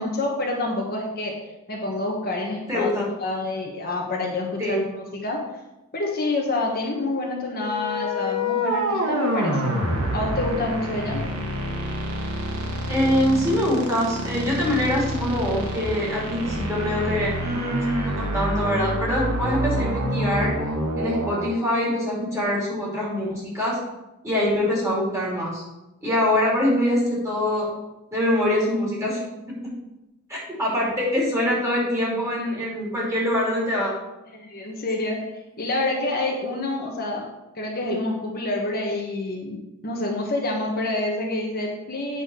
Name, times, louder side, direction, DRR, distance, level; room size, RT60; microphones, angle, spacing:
voice 1, 0.0-1.4 1.7-2.9 3.2-4.8 5.1-5.4 5.9-9.8 10.1-11.2 34.3-35.2 35.6-37.3 37.5-42.2, left 2 dB, 45° left, -1 dB, 1.3 m, -27 dB
voice 2, 2.7-3.1 4.6-4.8 12.9-20.5 20.9-23.8 24.2-25.6 26.0-27.7 28.1-29.2 29.6-29.7 30.3-33.9, left 1 dB, 15° right, -5 dB, 2.8 m, -24 dB
sound 1, 7.6-21.5, equal, 75° right, 1.5 m, -27 dB
8.5 x 4.2 x 6.3 m, 0.98 s
head